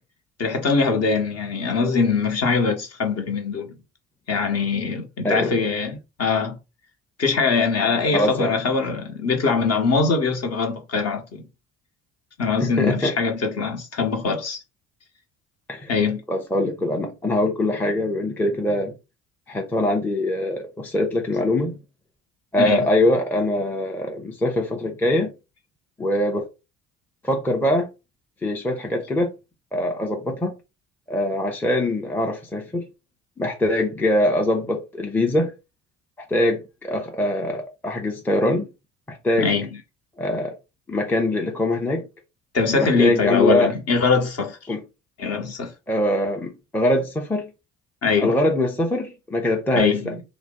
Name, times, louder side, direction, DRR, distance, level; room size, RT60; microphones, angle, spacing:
voice 1, 0.4-3.8 4.3-6.6 7.2-11.4 12.4-14.6 15.9-16.2 22.6-22.9 39.4-39.7 42.5-44.6 45.2-45.7 48.0-48.4 49.8-50.2, left 4 dB, 40° left, 1.0 m, -22 dB
voice 2, 8.1-8.6 12.6-13.1 15.7-15.9 16.3-18.9 19.5-21.8 22.5-25.3 26.0-26.5 27.2-27.9 28.4-29.3 29.7-30.5 31.1-32.9 33.4-35.5 36.3-38.7 39.1-39.5 40.2-40.6 40.9-42.1 42.7-43.7 44.7-44.8 45.9-47.5 48.2-50.2, left 1 dB, 5° left, 0.6 m, -23 dB
2.5 x 2.0 x 3.6 m
hypercardioid pair, 55°, 38 cm